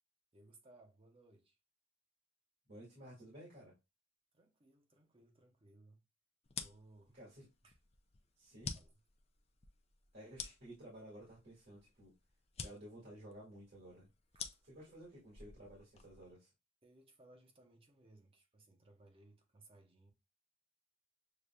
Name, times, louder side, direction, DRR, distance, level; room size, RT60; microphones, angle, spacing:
voice 1, 0.3-1.6 4.3-6.0 6.6-7.2 7.6-7.8 8.7-9.0 14.3-15.2 16.8-20.1, right 2 dB, 25° right, 0.8 m, -64 dB
voice 2, 2.7-3.7 7.1-7.5 8.4-8.7 10.1-12.1 12.6-14.1 14.6-16.5, right 1 dB, 55° right, 1.8 m, -54 dB
sound 1, 6.4-16.3, left 6 dB, 30° left, 0.5 m, -50 dB
6.7 x 2.5 x 2.2 m
head